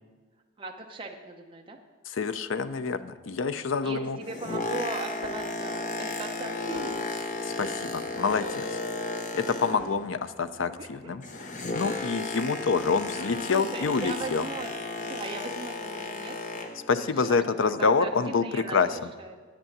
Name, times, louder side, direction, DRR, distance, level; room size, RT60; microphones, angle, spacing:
voice 1, 0.6-1.8 3.8-6.9 8.0-8.2 10.8-10.9 11.7-12.4 13.1-16.7 17.0-19.4, right 2 dB, 25° right, 1 dB, 0.7 m, -39 dB
voice 2, 2.1-4.2 7.4-8.8 9.3-14.4 16.9-18.9, left 5 dB, 65° left, 12 dB, 0.5 m, -27 dB
Boat Water vehicle, 4.1-10.1 10.4-16.9 17.5-17.6, left 2 dB, 40° left, 0.8 m, -34 dB
sound 1, 5.2-16.3, left 1 dB, 85° left, 1.9 m, -52 dB
8.8 x 8.3 x 7.2 m, 1.4 s
head